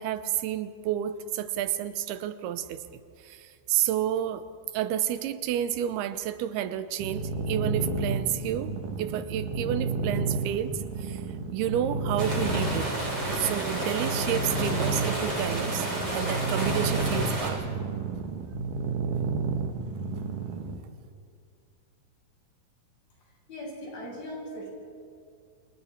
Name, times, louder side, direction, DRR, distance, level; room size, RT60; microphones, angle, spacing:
voice 1, 0.0-2.8 3.2-4.4 4.7-11.2 11.5-12.9 13.3-17.8, right 11 dB, 85° right, 11 dB, 2.9 m, -30 dB
sound 1, 7.0-20.8, right 4 dB, 60° right, 2.8 m, -31 dB
sound 2, 12.2-17.5, right 1 dB, 25° right, 6.6 m, -31 dB
voice 2, 23.5-24.7, equal, 70° left, -4 dB, 9.6 m, -39 dB
30.0 x 26.0 x 4.5 m, 2.3 s
omnidirectional pair, 4.4 m